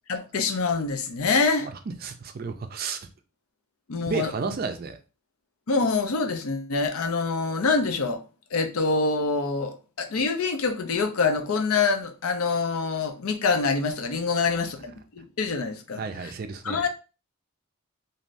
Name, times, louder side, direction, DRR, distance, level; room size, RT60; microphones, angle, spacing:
voice 1, 0.1-1.7 3.9-4.3 5.7-8.2 8.5-16.3 16.6-16.9, left 4 dB, 80° left, 0.6 m, -25 dB
voice 2, 2.0-3.0 4.1-5.0 14.4-14.6 16.0-16.9, right 5 dB, 45° right, 0.4 m, -32 dB
3.1 x 2.6 x 2.5 m
head